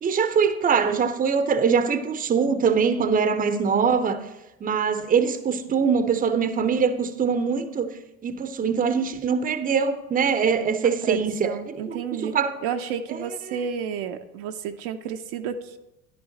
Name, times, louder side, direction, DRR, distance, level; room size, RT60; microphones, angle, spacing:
voice 1, 0.0-4.2 4.6-7.9 8.2-12.5, right 6 dB, 20° right, 11 dB, 0.8 m, -23 dB
voice 2, 10.8-15.8, right 7 dB, 55° right, 6 dB, 0.7 m, -31 dB
12.0 x 11.0 x 2.9 m, 0.95 s
figure-of-eight pair, 70°, 42 cm